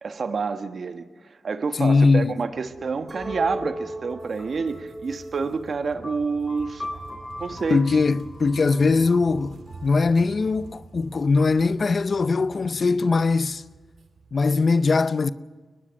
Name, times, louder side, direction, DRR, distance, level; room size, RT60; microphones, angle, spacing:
voice 1, 0.0-6.9 7.4-7.8, right 4 dB, 65° right, 1.4 m, -28 dB
voice 2, 1.7-2.4 7.7-13.6 14.3-15.3, left 4 dB, 55° left, 0.6 m, -21 dB
sound 1, 2.4-14.3, right 4 dB, 80° right, 2.1 m, -48 dB
Chink clink, 3.1-8.3, right 1 dB, 15° right, 6.6 m, -40 dB
sound 2, 3.2-10.8, left 1 dB, 30° left, 7.1 m, -42 dB
23.0 x 20.0 x 6.4 m
cardioid pair, 55°, 0 cm